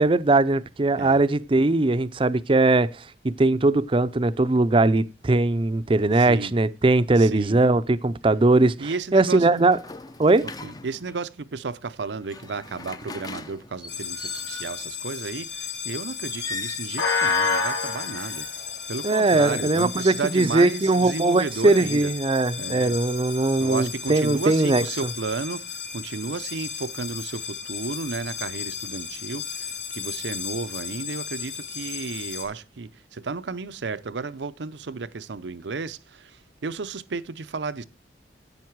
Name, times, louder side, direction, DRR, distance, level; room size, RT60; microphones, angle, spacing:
voice 1, 0.0-2.9 3.2-9.8 10.2-10.5 19.0-24.8, right 2 dB, 30° right, 0.5 m, -20 dB
voice 2, 6.2-6.5 7.2-7.6 8.8-9.6 10.6-18.5 18.9-22.1 22.6-23.0 23.6-37.8, right 4 dB, 85° right, 0.7 m, -33 dB
sound 1, 9.5-11.3 12.1-14.9 16.2-16.9, left 3 dB, 20° left, 0.6 m, -39 dB
sound 2, 13.9-32.4, left 5 dB, 75° left, 3.3 m, -32 dB
10.5 x 8.1 x 4.6 m
head